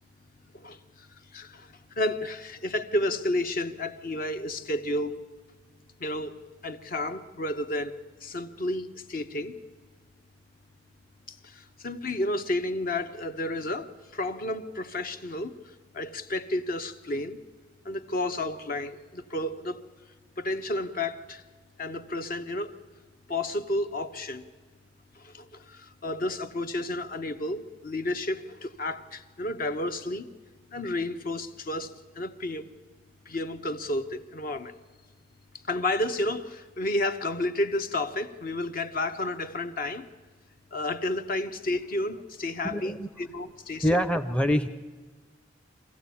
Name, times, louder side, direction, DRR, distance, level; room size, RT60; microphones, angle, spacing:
voice 1, 0.5-5.2 6.0-9.6 11.3-15.6 15.9-17.4 17.8-19.8 20.4-21.4 21.8-22.8 23.3-24.5 25.1-30.3 30.7-32.7 33.3-34.7 35.7-40.1 40.7-43.8, left 1 dB, 50° left, 0.9 m, -31 dB
voice 2, 42.6-43.1 43.8-44.7, equal, 5° left, 0.6 m, -25 dB
24.0 x 15.5 x 8.4 m
head